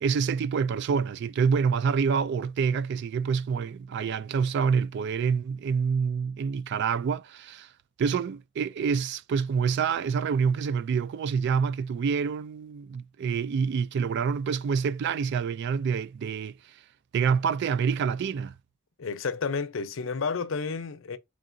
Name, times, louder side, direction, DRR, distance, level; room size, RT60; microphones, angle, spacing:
voice 1, 0.0-7.7 8.0-16.6 17.1-18.5, right 6 dB, 60° right, 0.3 m, -27 dB
voice 2, 19.0-21.2, left 5 dB, 90° left, 0.6 m, -31 dB
3.8 x 3.7 x 2.5 m
head